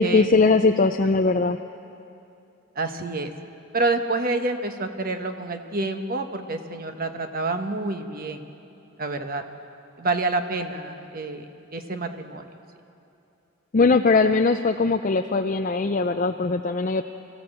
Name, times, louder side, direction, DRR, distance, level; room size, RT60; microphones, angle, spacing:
voice 1, 0.0-1.6 13.7-17.0, left 3 dB, 35° left, 6 dB, 0.4 m, -20 dB
voice 2, 2.8-3.3 3.7-8.5 9.0-9.4 10.0-12.5, right 2 dB, 40° right, 6 dB, 1.0 m, -28 dB
25.0 x 15.0 x 7.6 m, 2.7 s
head